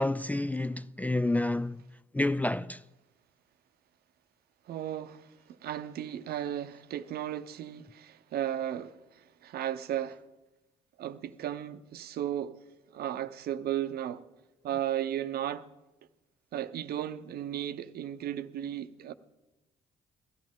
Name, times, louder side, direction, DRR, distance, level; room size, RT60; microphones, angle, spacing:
voice 1, 0.0-1.8 2.1-2.8, left 2 dB, 10° left, 0.4 m, -29 dB
voice 2, 4.7-5.3 5.6-10.2 11.0-12.6 12.9-14.2 14.6-15.7 16.5-19.1, right 11 dB, 60° right, 0.8 m, -35 dB
17.5 x 13.5 x 3.7 m
hypercardioid pair, 50°, 18 cm